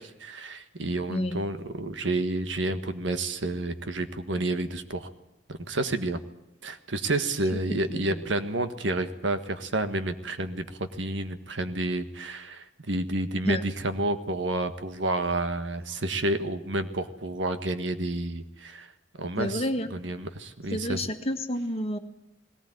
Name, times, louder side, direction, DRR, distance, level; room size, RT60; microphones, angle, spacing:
voice 1, 0.0-5.1 5.5-6.2 6.6-10.7 11.0-18.9 19.2-21.1, right 2 dB, 70° right, 9 dB, 1.6 m, -30 dB
voice 2, 1.1-1.4 7.7-8.2 13.4-13.6 19.4-19.9 20.7-22.0, equal, 35° left, 6 dB, 1.8 m, -30 dB
19.5 x 18.5 x 9.4 m, 0.89 s
head